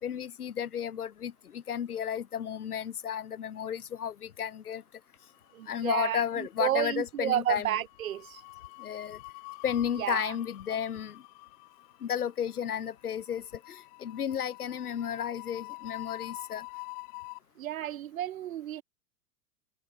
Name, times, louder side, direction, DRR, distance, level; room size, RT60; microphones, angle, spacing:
voice 1, 0.0-4.8 5.7-7.7 8.8-9.2 9.6-11.2 12.0-16.7, left 9 dB, 70° left, 1.9 m, -33 dB
sound 1, 5.3-6.1 6.4-6.7 7.8-17.4, left 40 dB or more, 40° left, 3.4 m, -46 dB
voice 2, 5.5-8.4 10.0-10.3 17.6-18.8, right 12 dB, 60° right, 2.4 m, -32 dB
figure-of-eight pair, 105°, 46 cm